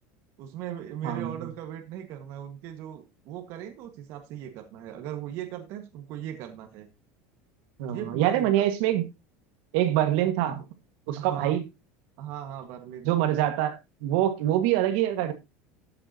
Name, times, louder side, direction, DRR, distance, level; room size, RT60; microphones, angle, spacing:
voice 1, 0.4-6.9 7.9-8.6 11.1-11.6 12.2-13.2, right 11 dB, 50° right, 6 dB, 1.6 m, -38 dB
voice 2, 1.0-1.5 7.8-9.1 9.7-10.6 11.1-11.6 13.0-15.3, right 12 dB, 65° right, 8 dB, 1.7 m, -25 dB
14.0 x 7.9 x 2.8 m, 0.22 s
cardioid pair, 160°, 6 cm